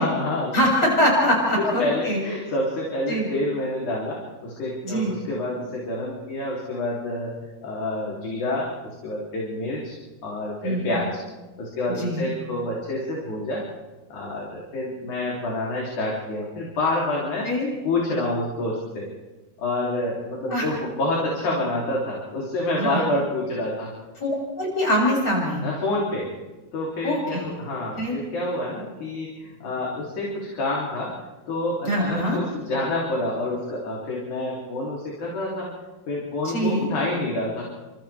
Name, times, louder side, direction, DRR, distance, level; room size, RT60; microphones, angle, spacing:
voice 1, 0.0-0.6 1.8-7.3 7.6-8.7 9.0-9.9 10.2-11.2 11.6-13.6 14.1-17.5 17.8-19.1 19.6-23.9 25.6-26.3 26.7-31.1 31.5-35.7 36.1-37.6, left 2 dB, 55° left, -4 dB, 4.5 m, -28 dB
voice 2, 0.5-2.2 3.1-3.3 4.8-5.1 10.6-10.9 12.0-12.3 17.4-17.7 20.5-20.7 22.8-23.0 24.2-25.6 27.0-27.5 28.0-28.2 31.8-32.4 36.4-36.9, equal, 25° left, -3 dB, 8.1 m, -23 dB
29.5 x 26.5 x 3.5 m, 1.2 s
omnidirectional pair, 4.3 m